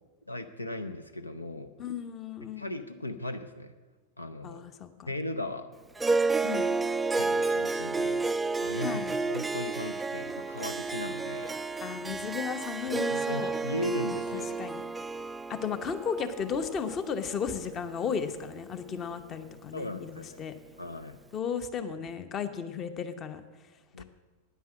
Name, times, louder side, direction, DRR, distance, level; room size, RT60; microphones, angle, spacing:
voice 1, 0.3-1.7 2.4-3.7 4.2-4.6 5.1-5.7 7.1-8.3 8.6-11.6 12.9-14.6 19.7-20.4 20.8-21.2 23.9-24.0, left 2 dB, 80° left, 10 dB, 0.6 m, -37 dB
voice 2, 1.8-2.7 4.4-5.1 6.4-6.7 8.8-9.2 11.8-13.5 14.3-14.8 15.5-20.5 21.3-23.4 24.0-24.1, left 7 dB, 30° left, 11 dB, 0.9 m, -34 dB
Harp, 6.0-18.5, right 3 dB, 10° right, 0.3 m, -31 dB
9.6 x 9.2 x 7.6 m, 1.3 s
figure-of-eight pair, 90°, 0 cm